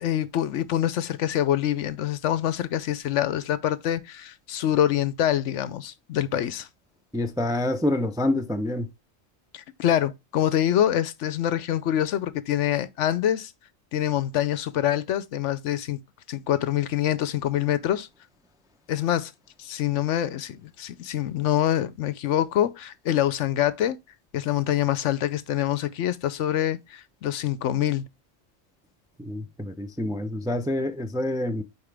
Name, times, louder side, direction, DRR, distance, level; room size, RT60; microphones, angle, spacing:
voice 1, 0.0-6.7 9.5-13.5 13.9-16.0 16.3-18.1 18.9-19.3 19.6-24.0 24.3-28.0, left 11 dB, 70° left, 0.9 m, -25 dB
voice 2, 7.1-8.9 29.2-31.6, left 1 dB, 5° right, 0.4 m, -27 dB
8.6 x 4.4 x 3.4 m
omnidirectional pair, 1.3 m